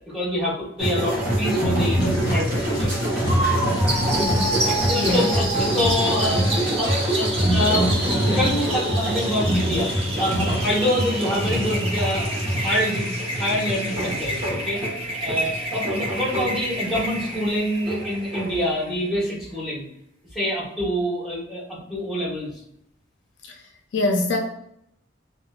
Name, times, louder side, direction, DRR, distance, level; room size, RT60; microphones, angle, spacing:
voice 1, 0.1-2.0 2.3-3.0 4.5-9.9 10.2-13.1 13.4-14.8 15.2-19.9 20.3-22.6, left 1 dB, ahead, -7 dB, 1.0 m, -26 dB
sound 1, 0.8-18.6, equal, 45° right, 0.8 m, -24 dB
sound 2, 2.0-14.5, left 1 dB, 20° left, 0.6 m, -39 dB
sound 3, 3.9-19.1, right 1 dB, 30° right, 0.4 m, -30 dB
voice 2, 23.9-24.4, left 2 dB, 65° left, 2 dB, 0.4 m, -22 dB
2.7 x 2.1 x 2.3 m, 0.75 s
head